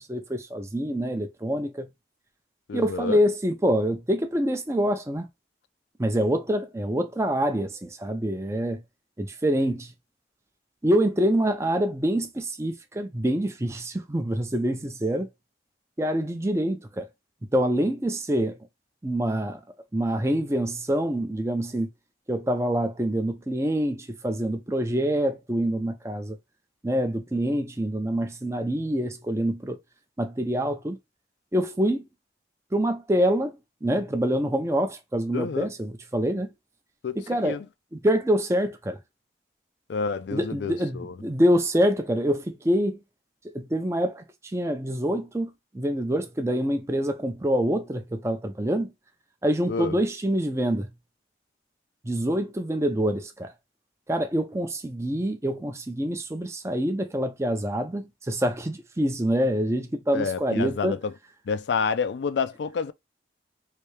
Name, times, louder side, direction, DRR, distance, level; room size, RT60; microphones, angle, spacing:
voice 1, 0.0-1.9 2.7-5.3 6.0-8.8 9.2-9.9 10.8-15.3 16.0-17.1 17.4-18.6 19.0-19.6 19.9-21.9 22.3-26.4 26.8-29.8 30.2-31.0 31.5-32.0 32.7-33.5 33.8-36.5 37.2-37.6 37.9-39.0 40.3-43.0 43.5-48.9 49.4-50.9 52.0-53.5 54.1-61.0, equal, 15° right, 0.5 m, -26 dB
voice 2, 2.7-3.2 35.3-35.7 37.0-37.6 39.9-41.1 49.7-50.0 60.1-61.1 61.5-62.9, left 5 dB, 75° left, 0.4 m, -29 dB
3.3 x 2.7 x 3.2 m
head